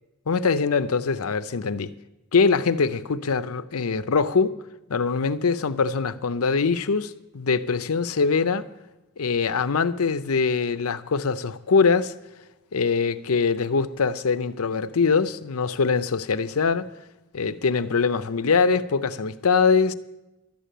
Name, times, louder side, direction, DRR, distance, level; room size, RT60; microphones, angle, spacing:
voice 1, 0.3-1.9 2.3-4.6 4.9-8.7 9.2-12.2 12.7-16.9 17.3-19.9, left 5 dB, 85° left, 0.6 m, -23 dB
12.0 x 8.4 x 9.0 m
head